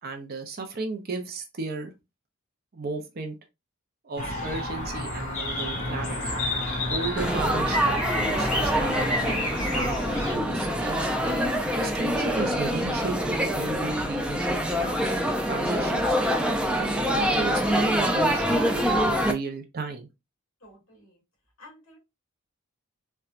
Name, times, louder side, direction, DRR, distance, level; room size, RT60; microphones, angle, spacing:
voice 1, 0.0-1.9 2.7-3.4 4.0-6.4 6.9-9.9 10.3-11.1 11.8-15.1 15.5-16.2 16.7-20.1, right 3 dB, 45° right, 0.6 m, -34 dB
sound 1, 4.2-10.4, left 1 dB, 35° left, 1.6 m, -30 dB
Laughter / Chatter / Crowd, 7.2-19.3, equal, 5° right, 0.4 m, -25 dB
voice 2, 20.6-21.2 21.6-22.0, left 1 dB, 60° left, 1.9 m, -51 dB
4.3 x 2.2 x 2.4 m
head